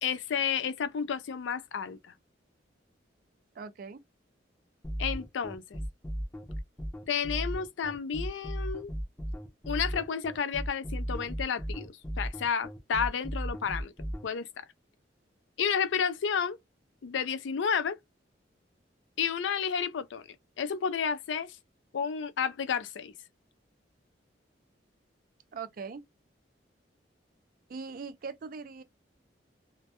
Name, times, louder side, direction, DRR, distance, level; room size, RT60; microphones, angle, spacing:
voice 1, 0.0-2.1 5.0-5.8 7.1-8.9 9.7-13.9 14.2-14.5 15.6-16.6 17.0-18.0 19.2-21.6 21.9-23.1, left 7 dB, 85° left, 0.4 m, -31 dB
voice 2, 3.5-4.0 25.5-26.0 27.7-28.8, right 5 dB, 50° right, 0.4 m, -40 dB
sound 1, 4.8-14.2, equal, 15° left, 0.6 m, -35 dB
2.2 x 2.0 x 2.8 m
head